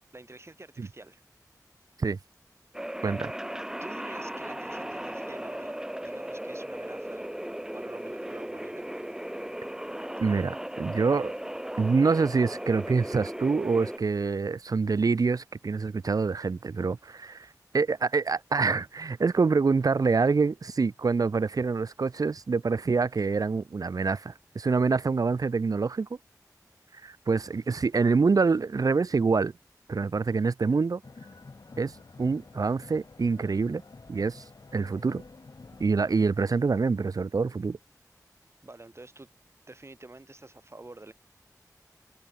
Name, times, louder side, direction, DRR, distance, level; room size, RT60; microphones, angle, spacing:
voice 1, 0.1-1.2 3.0-3.1 3.8-5.7 6.0-7.2 7.7-8.8 38.6-39.3 39.7-41.1, right 2 dB, 45° right, 1.9 m, -48 dB
sound 1, 2.7-14.0, right 1 dB, 10° right, 0.5 m, -37 dB
voice 2, 10.2-11.3 11.8-17.5 17.7-26.1 27.0-29.5 29.9-31.0 31.8-31.9 32.2-33.8 34.1-34.4 34.7-35.2 35.8-37.8, right 4 dB, 65° right, 0.4 m, -26 dB
sound 2, 31.0-36.3, left 3 dB, 80° left, 3.7 m, -49 dB
wide cardioid pair, 60°, 7 cm